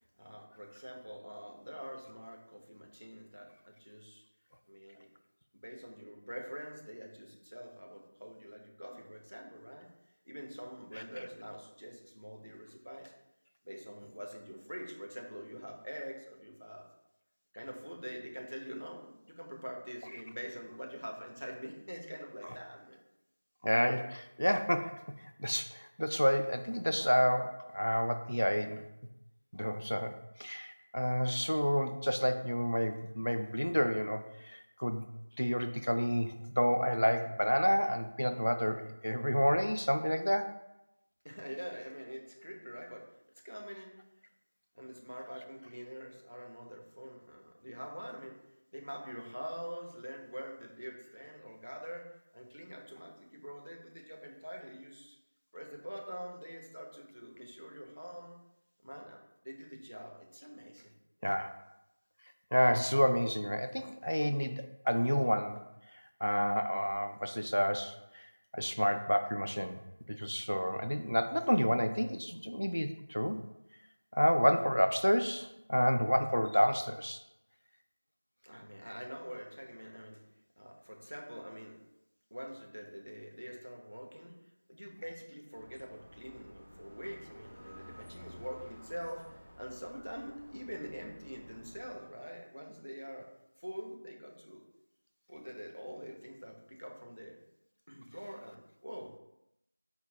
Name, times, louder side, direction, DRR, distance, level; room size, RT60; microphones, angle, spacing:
voice 1, 0.2-4.2 4.7-5.1 5.5-9.9 10.2-13.1 13.6-16.9 17.5-23.0 41.2-43.1 43.4-44.0 44.7-48.4 48.7-55.2 55.5-58.3 58.8-60.9 78.4-80.3 80.6-81.8 82.3-84.4 84.7-93.3 93.6-94.6 95.3-97.4 97.9-99.1, equal, 80° right, 0 dB, 1.0 m, -45 dB
voice 2, 23.6-25.0 25.4-28.9 29.5-35.0 35.4-40.5 61.2-61.5 62.5-65.6 66.2-68.3 68.5-69.8 70.1-73.4 74.1-77.2, equal, 75° left, 7 dB, 0.4 m, -30 dB
sound 1, 85.5-92.0, equal, ahead, 0.4 m, -54 dB
4.3 x 2.1 x 3.9 m, 0.87 s
figure-of-eight pair, 175°, 0 cm